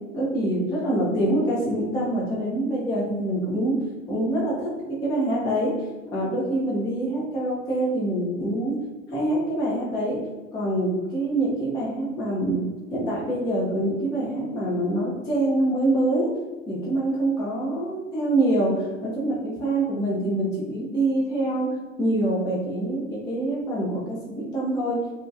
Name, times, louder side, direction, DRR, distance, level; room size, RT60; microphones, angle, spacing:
voice 1, 0.1-3.8 4.1-5.7 6.1-8.7 9.1-10.2 10.5-12.6 12.9-16.3 16.7-21.7 22.0-25.0, right 1 dB, 10° left, -6 dB, 0.4 m, -25 dB
2.7 x 2.1 x 2.4 m, 1.3 s
hypercardioid pair, 90°, 40 cm